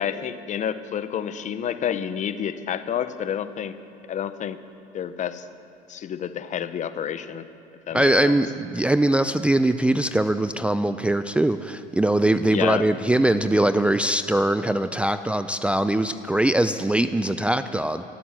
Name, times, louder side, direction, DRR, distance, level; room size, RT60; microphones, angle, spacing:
voice 1, 0.0-3.8 4.1-4.6 4.9-5.4 5.9-7.4 7.9-8.4 12.5-12.9, left 9 dB, 40° left, 12 dB, 0.8 m, -29 dB
voice 2, 7.9-18.1, right 1 dB, 5° right, 10 dB, 0.4 m, -22 dB
12.5 x 12.5 x 7.5 m, 2.8 s
supercardioid pair, 100°, 18 cm